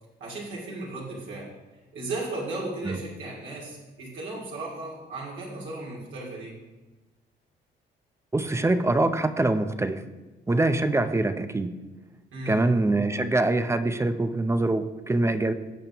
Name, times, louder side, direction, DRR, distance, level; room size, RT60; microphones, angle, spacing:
voice 1, 0.2-1.5 1.9-6.5 12.3-12.6, right 2 dB, 75° right, -5 dB, 2.3 m, -35 dB
voice 2, 8.3-10.0 10.5-11.7 12.5-15.5, right 2 dB, 15° right, 10 dB, 0.5 m, -24 dB
15.0 x 5.3 x 2.9 m, 1.1 s
cardioid pair, 90°, 20 cm